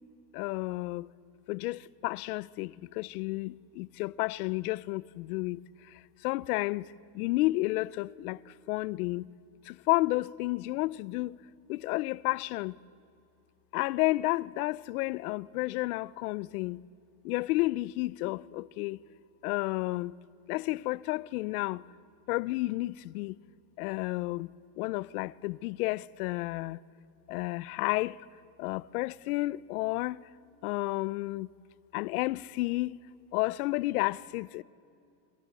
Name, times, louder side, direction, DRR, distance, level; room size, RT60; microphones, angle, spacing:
voice 1, 0.3-1.1 1.5-5.6 6.2-9.3 9.7-11.4 11.7-12.8 13.7-16.8 17.2-19.0 19.4-20.2 20.5-21.8 22.3-23.4 23.8-24.5 24.8-26.8 27.3-28.2 28.6-30.2 30.6-31.5 31.9-33.0 33.3-34.6, left 20 dB, 60° left, 0.7 m, -31 dB
26.5 x 25.5 x 8.3 m
supercardioid pair, 170°, 49 cm